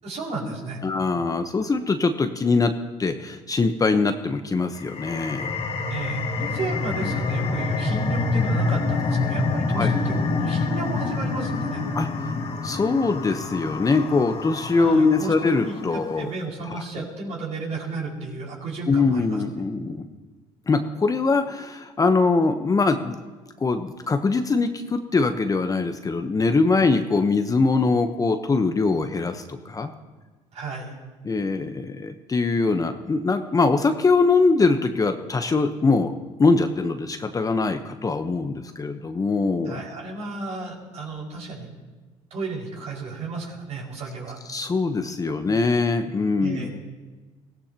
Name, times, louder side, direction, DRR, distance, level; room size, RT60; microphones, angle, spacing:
voice 1, 0.0-0.8 5.9-11.8 14.8-19.4 30.5-30.9 39.7-41.7 42.3-44.4 46.4-46.7, right 3 dB, 55° right, -3 dB, 5.5 m, -33 dB
voice 2, 0.8-2.7 3.0-5.5 7.0-7.2 9.8-9.9 11.9-12.1 12.6-16.3 16.6-16.8 18.9-20.0 20.7-23.2 23.6-29.9 31.2-36.1 36.4-39.8 44.5-46.7, left 3 dB, 25° left, 7 dB, 1.0 m, -22 dB
sound 1, 4.8-15.9, left 3 dB, 45° left, 1.8 m, -27 dB
22.5 x 16.5 x 2.9 m, 1.3 s
supercardioid pair, 90°, 13 cm